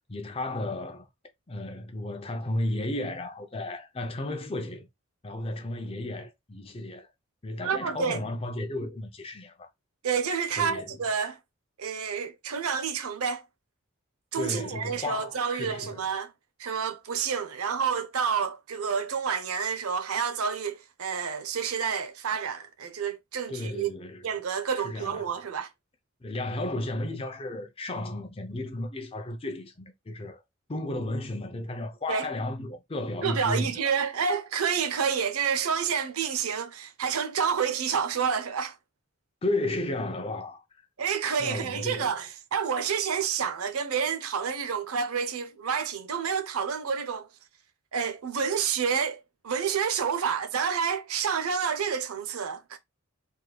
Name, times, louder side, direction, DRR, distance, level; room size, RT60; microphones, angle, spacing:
voice 1, 0.1-1.1 1.5-4.9 5.2-7.1 7.4-9.7 10.6-11.0 14.3-16.1 23.5-24.2 24.8-25.3 26.2-30.4 30.7-33.9 39.4-40.9 41.4-42.2, left 2 dB, 25° left, 0.5 m, -33 dB
voice 2, 7.6-8.2 10.0-11.4 11.8-13.4 14.3-16.3 16.6-23.9 24.2-25.7 32.1-32.3 33.2-38.8 41.0-47.3 47.9-52.8, right 6 dB, 85° right, 0.6 m, -29 dB
3.5 x 3.1 x 2.3 m
head